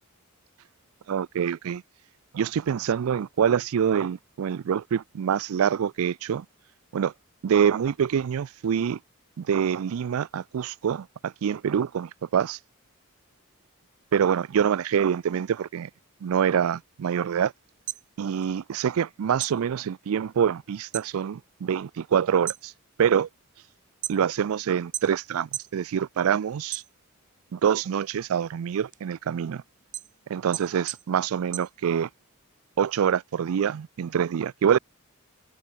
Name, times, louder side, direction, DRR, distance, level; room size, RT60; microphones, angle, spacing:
voice 1, 1.1-1.8 2.3-6.4 6.9-7.1 7.4-9.0 9.4-12.6 14.1-15.9 16.2-17.5 18.2-22.7 23.0-23.3 24.1-26.8 27.5-29.6 30.3-32.1 32.8-34.8, right 8 dB, 75° right, 0.4 m, -25 dB
sound 1, 17.7-19.1 19.4-21.1 21.5-21.9 22.3-24.5 24.9-25.8 26.2-27.4 27.8-32.3, right 12 dB, 35° right, 0.7 m, -37 dB
open air
head